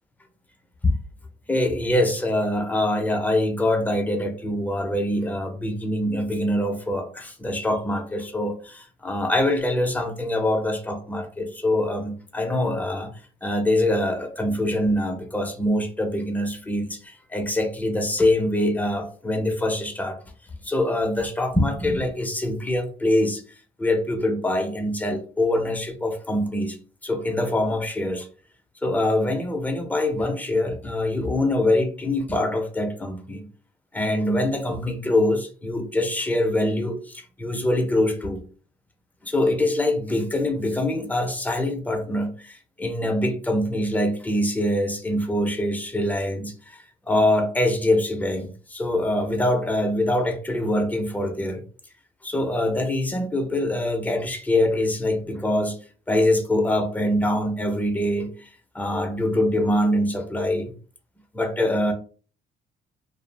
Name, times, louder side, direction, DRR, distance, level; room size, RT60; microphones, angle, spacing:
voice 1, 1.5-13.1 13.4-20.2 20.6-23.4 23.8-26.8 27.0-28.3 28.8-33.5 33.9-38.4 39.2-51.6 52.2-55.8 56.1-58.5 58.7-60.7 61.3-61.9, left 1 dB, 10° left, 0.5 m, -24 dB
2.3 x 2.0 x 3.2 m
cardioid pair, 110°, 17 cm